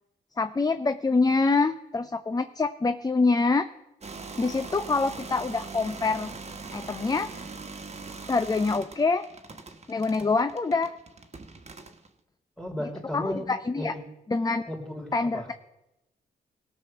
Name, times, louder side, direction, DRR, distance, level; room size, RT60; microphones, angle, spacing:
voice 1, 0.4-3.7 4.4-6.3 6.7-7.3 8.3-9.2 9.9-10.9 13.1-13.9 14.3-14.7 15.1-15.5, left 3 dB, 20° left, 10 dB, 0.6 m, -25 dB
sound 1, 4.0-12.1, right 4 dB, 35° right, 1.4 m, -41 dB
voice 2, 12.6-14.1 14.7-15.5, equal, 5° left, 2 dB, 3.2 m, -35 dB
17.5 x 6.2 x 5.7 m, 0.90 s
supercardioid pair, 50°, 18 cm